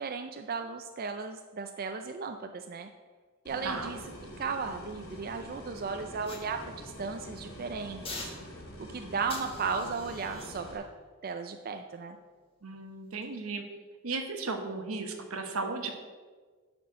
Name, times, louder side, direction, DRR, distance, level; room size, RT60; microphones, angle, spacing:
voice 1, 0.0-2.9 3.5-4.0 4.4-8.3 8.8-10.8 11.2-12.2, right 5 dB, 45° right, 6 dB, 0.4 m, -35 dB
broken audio file distortion, 3.5-10.8, equal, 80° left, 2.2 m, -45 dB
voice 2, 3.6-3.9 12.6-13.6 14.0-15.9, right 3 dB, 85° right, 5 dB, 1.2 m, -35 dB
Steel-plate-bangs-outsidewithbirds, 6.2-7.2 8.0-8.9 9.3-12.5 13.1-13.3, left 3 dB, 25° left, 1.5 m, -47 dB
11.0 x 4.4 x 6.2 m, 1.5 s
head